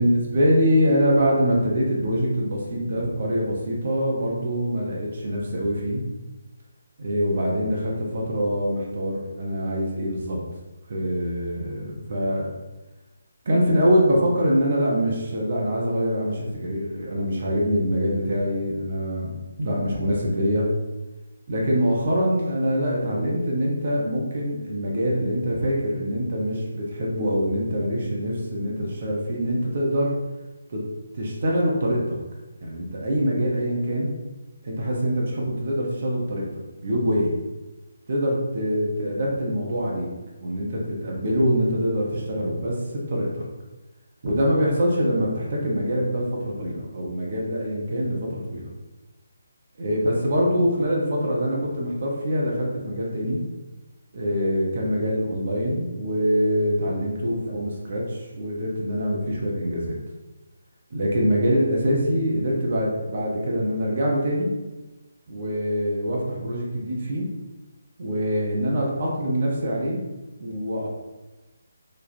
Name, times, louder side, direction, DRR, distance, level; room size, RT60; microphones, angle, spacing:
voice 1, 0.0-6.0 7.0-10.4 10.9-12.5 13.4-19.3 19.6-20.7 21.5-30.1 30.7-30.8 31.1-32.2 32.6-34.1 34.6-37.4 38.1-40.1 40.4-43.4 44.2-48.7 49.8-53.4 54.1-60.0 60.9-64.5 65.3-67.3 68.0-70.0 70.4-70.9, equal, 45° right, -3 dB, 0.9 m, -24 dB
3.2 x 2.3 x 4.2 m, 1.1 s
figure-of-eight pair, 145°, 0 cm